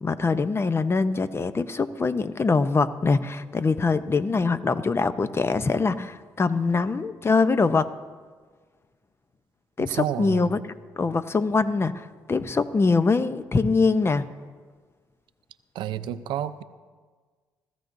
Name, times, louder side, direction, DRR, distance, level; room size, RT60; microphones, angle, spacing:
voice 1, 0.0-7.9 9.8-10.6 11.0-14.3, left 4 dB, 30° left, 12 dB, 0.7 m, -23 dB
voice 2, 10.0-10.4 15.8-16.6, right 11 dB, 80° right, 12 dB, 0.6 m, -29 dB
18.0 x 14.5 x 2.7 m, 1.5 s
supercardioid pair, 65°, 8 cm